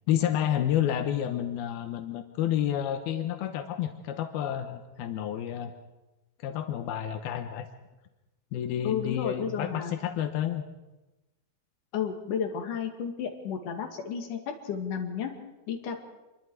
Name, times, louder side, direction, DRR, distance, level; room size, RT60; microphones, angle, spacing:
voice 1, 0.1-5.7 6.4-7.7 8.5-10.7, left 10 dB, 85° left, 7 dB, 3.0 m, -30 dB
voice 2, 8.8-9.9 11.9-14.4 14.6-15.3 15.7-16.0, left 7 dB, 60° left, 3 dB, 3.7 m, -32 dB
26.5 x 23.0 x 4.8 m, 1.0 s
omnidirectional pair, 4.3 m